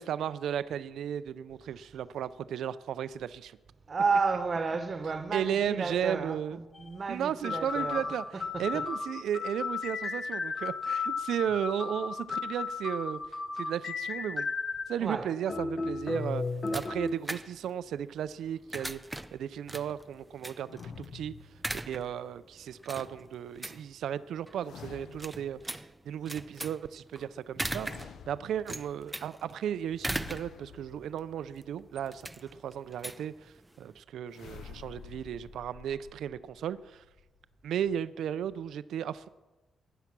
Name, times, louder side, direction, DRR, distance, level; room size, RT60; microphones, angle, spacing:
voice 1, 0.0-3.6 5.3-6.6 7.1-8.2 8.6-13.2 13.6-14.5 14.9-16.4 16.7-19.0 19.3-21.3 21.7-27.9 28.3-32.2 32.5-37.0 37.6-39.3, right 9 dB, 75° right, 0.4 m, -35 dB
voice 2, 3.9-8.0 8.3-8.8 15.0-15.3, right 4 dB, 30° right, 1.1 m, -32 dB
sound 1, 6.7-6.9 7.4-15.0 15.5-17.1, left 4 dB, 30° left, 0.8 m, -34 dB
sound 2, 16.0-34.0, right 1 dB, 10° right, 0.4 m, -41 dB
sound 3, 20.7-22.2 24.6-25.7 27.7-28.9 30.0-31.8 34.3-37.9, left 7 dB, 60° left, 0.6 m, -50 dB
15.0 x 10.0 x 6.0 m
wide cardioid pair, 165°, 0 cm